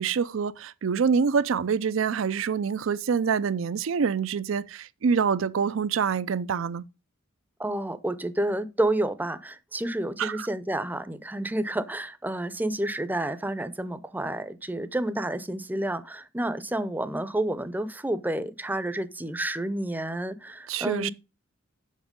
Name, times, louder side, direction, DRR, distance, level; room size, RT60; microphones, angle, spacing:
voice 1, 0.0-6.8 10.2-10.5 20.7-21.1, right 6 dB, 75° right, 0.4 m, -26 dB
voice 2, 7.6-21.1, right 1 dB, 10° right, 0.6 m, -30 dB
7.4 x 5.8 x 5.2 m
head